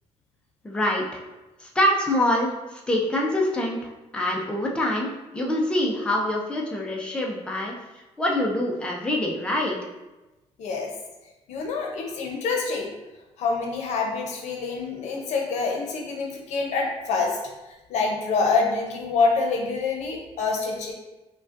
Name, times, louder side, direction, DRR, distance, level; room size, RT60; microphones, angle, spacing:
voice 1, 0.6-1.2 1.6-3.8 4.1-7.8 8.2-9.8, left 1 dB, 10° left, -2 dB, 0.5 m, -25 dB
voice 2, 10.6-10.9 11.5-12.9 13.4-17.4 17.7-20.9, left 4 dB, 85° left, 1 dB, 0.7 m, -26 dB
5.0 x 2.2 x 2.5 m, 1.1 s
cardioid pair, 145°, 12 cm